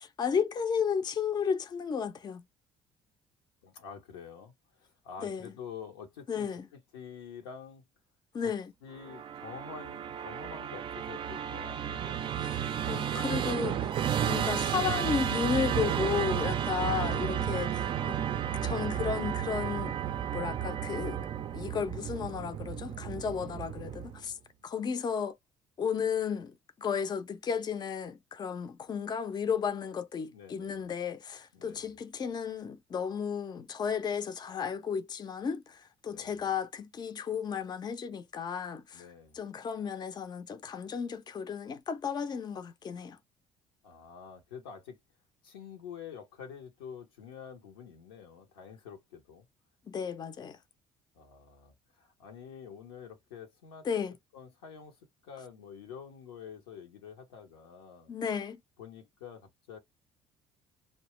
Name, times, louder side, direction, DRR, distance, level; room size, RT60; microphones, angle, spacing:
voice 1, 0.2-2.4 5.2-5.5 6.3-6.6 8.3-8.7 12.9-18.2 18.6-20.0 20.3-21.3 21.5-24.3 24.6-25.4 25.8-39.1 39.3-43.2 49.9-50.6 53.9-54.1 58.1-58.6, left 6 dB, 35° left, 0.5 m, -33 dB
voice 2, 3.6-7.8 8.4-8.5 8.8-12.2 17.0-17.9 30.3-30.9 31.5-32.0 36.1-36.4 38.9-39.4 43.8-45.0 45.4-49.5 51.1-53.9 54.3-55.0 55.2-58.1 58.8-59.8, left 7 dB, 90° left, 0.8 m, -47 dB
Musical instrument, 9.0-24.3, right 9 dB, 45° right, 0.4 m, -33 dB
2.7 x 2.2 x 3.0 m
hypercardioid pair, 60°, 12 cm